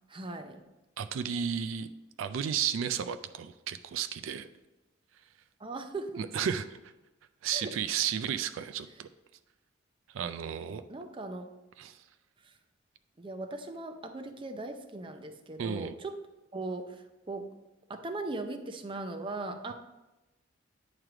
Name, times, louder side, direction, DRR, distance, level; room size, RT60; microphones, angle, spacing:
voice 1, 0.1-0.6 5.6-6.3 7.5-7.7 10.7-11.5 12.4-12.5 13.2-16.1 16.5-17.5 17.9-19.7, right 2 dB, 25° right, 6 dB, 0.5 m, -39 dB
voice 2, 1.0-1.9 2.2-4.5 6.2-6.9 7.4-9.1 10.1-10.8 11.8-12.1 15.6-15.9, right 8 dB, 80° right, 10 dB, 0.3 m, -33 dB
9.0 x 3.2 x 4.8 m, 1.0 s
head